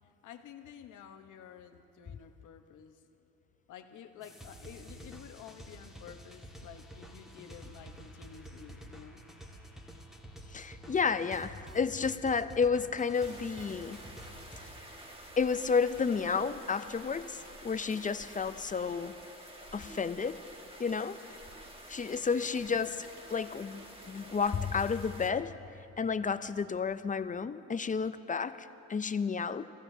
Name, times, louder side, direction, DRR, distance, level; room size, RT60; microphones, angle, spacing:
voice 1, 0.0-3.0 3.7-9.2, left 9 dB, 80° left, 6 dB, 1.0 m, -51 dB
sound 1, 4.2-14.7, right 1 dB, ahead, 1.8 m, -49 dB
voice 2, 10.5-14.0 15.4-19.1 19.7-20.4 20.8-21.2 21.9-25.6 26.0-29.7, left 5 dB, 25° left, 12 dB, 0.5 m, -31 dB
sound 2, 13.1-25.3, right 1 dB, 20° right, 1.7 m, -49 dB
28.5 x 15.0 x 2.7 m, 2.7 s
cardioid pair, 90°, 30 cm